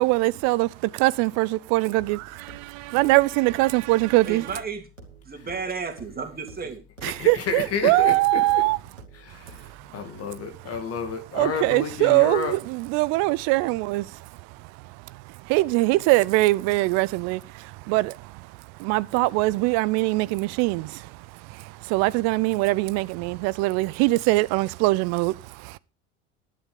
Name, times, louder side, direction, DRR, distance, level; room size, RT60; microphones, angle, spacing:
voice 1, 0.0-4.5 7.0-8.8 9.3-9.9 11.3-25.8, right 20 dB, 45° right, 0.6 m, -23 dB
sound 1, 2.0-10.0, right 3 dB, 90° right, 2.5 m, -49 dB
voice 2, 4.2-4.8 5.2-6.8, right 5 dB, 25° right, 2.9 m, -33 dB
voice 3, 7.0-8.6 9.1-12.5, left 5 dB, 40° left, 2.4 m, -31 dB
11.0 x 10.0 x 5.1 m
figure-of-eight pair, 70°, 37 cm